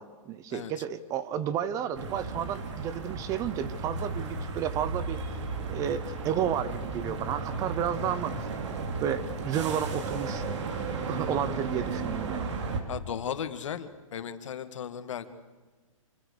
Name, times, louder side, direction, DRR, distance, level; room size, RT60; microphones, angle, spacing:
voice 1, 0.0-5.2 5.7-8.5 9.0-10.4 11.1-12.6, right 9 dB, 20° right, 15 dB, 0.8 m, -32 dB
sound 1, 1.9-12.8, right 4 dB, 55° right, 3.9 m, -34 dB
voice 2, 12.9-15.3, left 8 dB, 65° left, 10 dB, 2.2 m, -36 dB
27.0 x 26.5 x 6.7 m, 1.3 s
hypercardioid pair, 160°, 17 cm